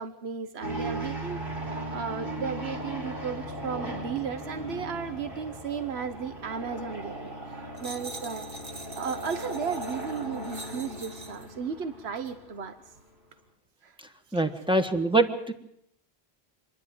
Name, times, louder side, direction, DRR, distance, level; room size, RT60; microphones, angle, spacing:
voice 1, 0.0-1.4 1.7-8.5 9.0-12.8 13.8-13.9 14.3-14.4, right 6 dB, 85° right, 9 dB, 1.3 m, -35 dB
sound 1, 0.6-12.7, right 1 dB, 60° right, 4.3 m, -37 dB
sound 2, 7.8-11.5 12.2-12.3, right 2 dB, 25° right, 1.1 m, -45 dB
voice 2, 14.3-15.5, right 2 dB, 5° right, 7 dB, 1.4 m, -24 dB
26.5 x 11.0 x 9.4 m, 0.76 s
omnidirectional pair, 1.1 m